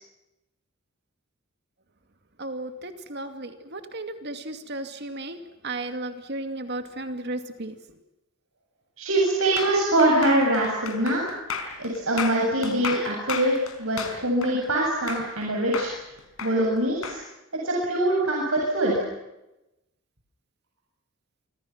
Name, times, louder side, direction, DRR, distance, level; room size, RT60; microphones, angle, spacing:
voice 1, 2.4-5.4 5.6-7.7, right 2 dB, 50° right, 7 dB, 2.4 m, -34 dB
voice 2, 9.0-11.2 11.8-15.9 16.4-17.2 17.6-18.9, right 1 dB, 70° right, -2 dB, 7.7 m, -23 dB
sound 1, 9.6-15.4 15.7-17.2, left 5 dB, 75° left, 5.2 m, -34 dB
29.0 x 26.5 x 6.0 m, 0.94 s
head